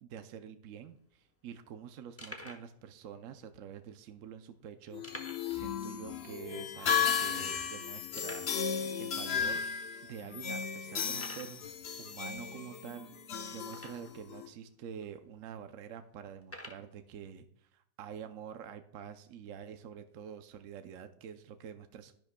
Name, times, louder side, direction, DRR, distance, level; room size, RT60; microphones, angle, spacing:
voice 1, 0.0-8.7 9.0-9.6 10.1-11.6 12.0-13.1 13.5-17.5 17.7-22.1, right 8 dB, 65° right, 8 dB, 0.8 m, -47 dB
sound 1, 0.7-0.8 1.0-1.2 1.7-1.8 2.2-2.7 3.5-3.6 5.0-5.6 5.9-6.0 6.4-6.5 7.1-7.2 8.1-8.6 9.4-9.5 10.1-10.2 11.1-11.6 13.7-14.2 15.0-15.1 16.4-16.9, left 1 dB, 20° left, 0.3 m, -47 dB
sound 2, 4.9-14.5, left 7 dB, 55° left, 0.7 m, -35 dB
10.5 x 10.5 x 2.2 m, 0.67 s
omnidirectional pair, 1.8 m